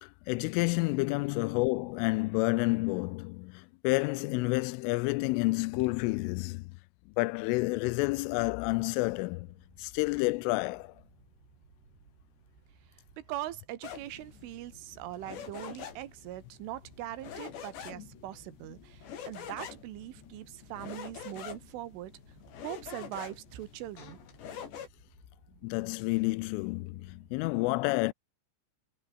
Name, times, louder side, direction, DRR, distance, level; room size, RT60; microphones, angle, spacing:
voice 1, 0.0-6.8 7.2-9.5 9.8-10.9 25.6-28.1, left 24 dB, 85° left, 3.1 m, -29 dB
sound 1, 9.2-27.5, right 5 dB, 60° right, 8.5 m, -61 dB
voice 2, 12.9-22.1 22.6-24.2, right 14 dB, 80° right, 4.0 m, -41 dB
sound 2, 13.8-24.9, left 8 dB, 65° left, 5.3 m, -46 dB
omnidirectional pair, 5.7 m